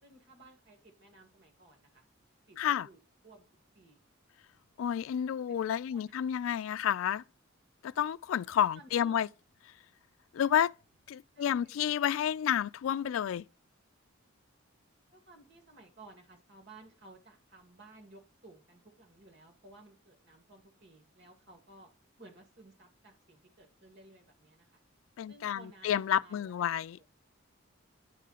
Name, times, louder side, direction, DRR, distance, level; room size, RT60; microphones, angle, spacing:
voice 1, 0.0-2.1 2.5-2.6 2.8-3.0 3.2-3.5 3.7-4.0 5.5-5.6 5.9-6.1 8.7-9.3 11.3-12.0 15.1-21.9 22.2-24.8 25.3-27.0, right 2 dB, 60° right, 2.2 m, -57 dB
voice 2, 2.6-2.9 4.8-7.2 7.8-9.3 10.3-10.7 11.1-13.4 25.2-27.0, left 9 dB, 75° left, 0.3 m, -30 dB
9.9 x 3.7 x 5.7 m
head